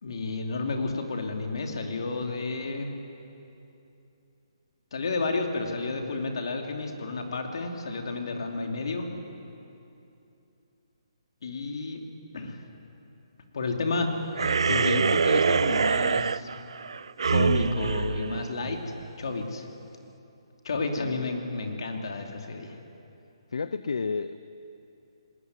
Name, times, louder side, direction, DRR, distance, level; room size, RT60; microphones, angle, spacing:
voice 1, 0.0-2.9 4.9-9.1 11.4-12.0 12.3-12.6 13.5-14.1 14.6-16.5 17.3-18.8 19.2-19.6 20.6-22.7, left 3 dB, 60° left, 3 dB, 2.8 m, -31 dB
sound 1, 14.4-19.1, right 5 dB, 70° right, 0.4 m, -25 dB
voice 2, 21.0-21.4 23.5-24.4, left 4 dB, 75° left, 13 dB, 0.6 m, -31 dB
19.5 x 17.5 x 9.6 m, 2.8 s
hypercardioid pair, 170°, 3 cm